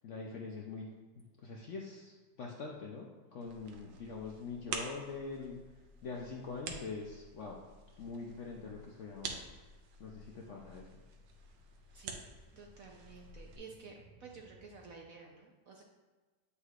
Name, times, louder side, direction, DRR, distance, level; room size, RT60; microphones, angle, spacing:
voice 1, 0.0-5.6 6.0-7.6 8.0-9.4 10.0-10.9, left 4 dB, 70° left, -1 dB, 0.7 m, -44 dB
sound 1, 3.4-13.6, right 4 dB, 90° right, 1.4 m, -48 dB
sound 2, 9.0-15.0, right 2 dB, 5° right, 1.5 m, -66 dB
voice 2, 11.9-15.8, right 4 dB, 65° right, 0 dB, 0.9 m, -53 dB
8.2 x 5.5 x 2.4 m, 1.3 s
omnidirectional pair, 2.0 m